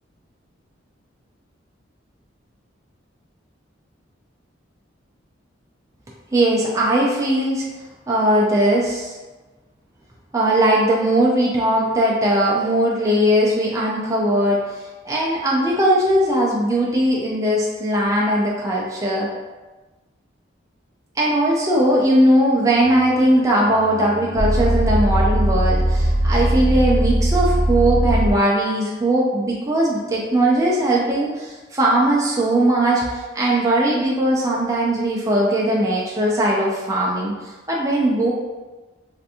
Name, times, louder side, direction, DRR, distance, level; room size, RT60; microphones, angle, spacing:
voice 1, 6.3-7.6 8.1-9.2 10.3-19.3 21.2-37.3 37.7-38.3, right 1 dB, 15° right, -4 dB, 0.3 m, -19 dB
sound 1, 22.8-28.3, right 1 dB, ahead, 1.0 m, -20 dB
3.3 x 2.5 x 2.7 m, 1.2 s
head